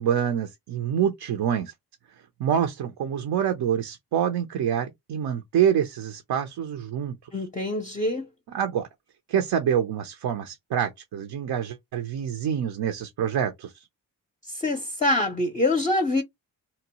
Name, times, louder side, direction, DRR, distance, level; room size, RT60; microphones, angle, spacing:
voice 1, 0.0-1.7 2.4-7.2 8.5-8.9 9.3-13.7, right 9 dB, 75° right, 0.6 m, -26 dB
voice 2, 7.3-8.3 14.5-16.2, left 2 dB, 20° left, 0.5 m, -25 dB
2.8 x 2.0 x 2.9 m
cardioid pair, 70°, 39 cm